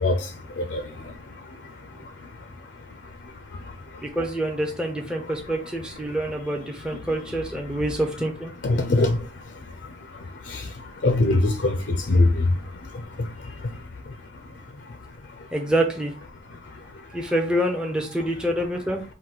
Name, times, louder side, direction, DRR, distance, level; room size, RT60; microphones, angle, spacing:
voice 1, 4.0-8.5 15.5-16.1 17.1-19.0, right 1 dB, 5° right, 0.5 m, -26 dB
voice 2, 8.6-9.2 10.5-10.6 11.0-12.3, left 2 dB, 60° left, 0.5 m, -20 dB
4.3 x 2.6 x 3.8 m
head